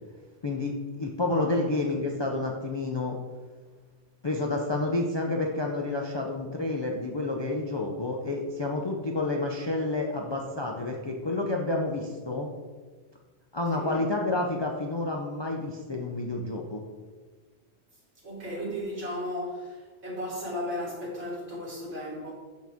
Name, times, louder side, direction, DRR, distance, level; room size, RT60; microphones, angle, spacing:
voice 1, 1.0-3.2 4.2-12.5 13.5-16.8, left 2 dB, 35° left, 0 dB, 0.4 m, -29 dB
voice 2, 18.2-22.3, equal, 65° right, -4 dB, 2.3 m, -35 dB
6.3 x 6.3 x 3.5 m, 1.4 s
omnidirectional pair, 1.2 m